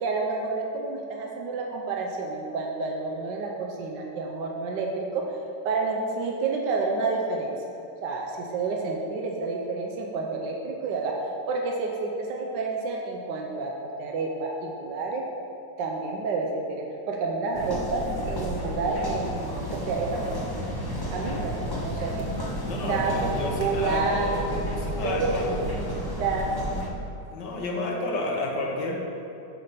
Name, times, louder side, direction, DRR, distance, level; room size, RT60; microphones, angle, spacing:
voice 1, 0.0-5.2 5.6-7.5 8.0-11.1 11.5-15.2 15.8-20.5 21.1-22.1 22.8-24.6 25.0-26.5, right 3 dB, 70° right, 0 dB, 1.4 m, -29 dB
sound 1, 17.5-26.9, equal, 20° left, 0.6 m, -32 dB
voice 2, 22.7-24.4 24.7-25.6 27.3-29.0, left 2 dB, 70° left, -1 dB, 1.8 m, -30 dB
7.7 x 5.7 x 6.8 m, 2.8 s
omnidirectional pair, 2.0 m